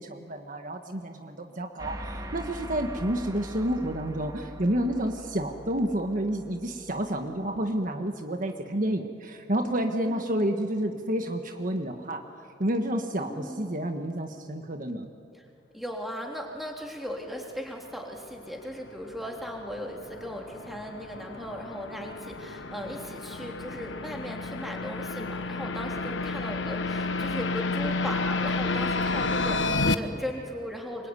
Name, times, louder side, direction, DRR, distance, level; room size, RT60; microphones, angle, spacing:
voice 1, 0.0-12.2 12.6-15.1, right 1 dB, 45° right, 4 dB, 1.5 m, -30 dB
sound 1, 1.8-7.6, equal, 20° right, 2.0 m, -42 dB
voice 2, 10.1-10.4 13.2-13.7 15.7-31.1, equal, ahead, 0 dB, 3.6 m, -37 dB
sound 2, 18.5-29.9, left 3 dB, 75° left, 1.2 m, -31 dB
25.5 x 23.0 x 9.8 m, 2.4 s
head